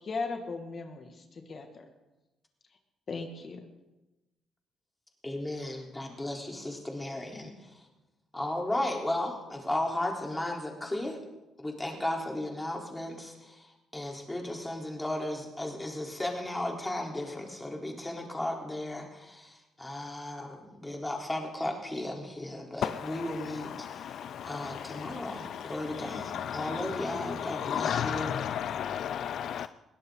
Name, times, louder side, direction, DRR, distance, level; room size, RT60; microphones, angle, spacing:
voice 1, 0.0-1.9 3.1-3.6, left 4 dB, 45° left, 4 dB, 2.2 m, -37 dB
voice 2, 5.2-7.9 8.3-11.2 11.6-28.3, left 1 dB, 10° left, 0 dB, 4.0 m, -35 dB
voice 3, 22.8-29.7, left 9 dB, 70° left, 14 dB, 0.4 m, -35 dB
21.5 x 17.0 x 4.0 m, 1.0 s
cardioid pair, 90°, 0 cm